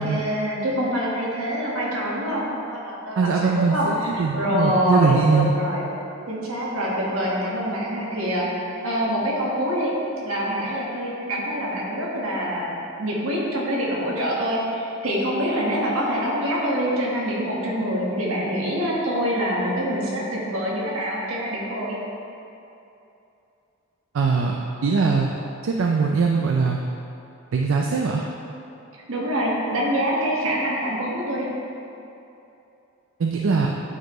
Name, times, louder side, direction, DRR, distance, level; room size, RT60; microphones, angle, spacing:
voice 1, 0.0-5.9 6.3-9.9 10.2-22.0 28.9-31.5, equal, 85° right, -4 dB, 1.4 m, -25 dB
voice 2, 3.2-5.5 24.1-24.5 24.8-25.3 25.6-26.8 27.5-28.2 33.2-33.7, right 4 dB, 65° right, 1 dB, 0.4 m, -21 dB
9.0 x 4.3 x 3.1 m, 2.8 s
head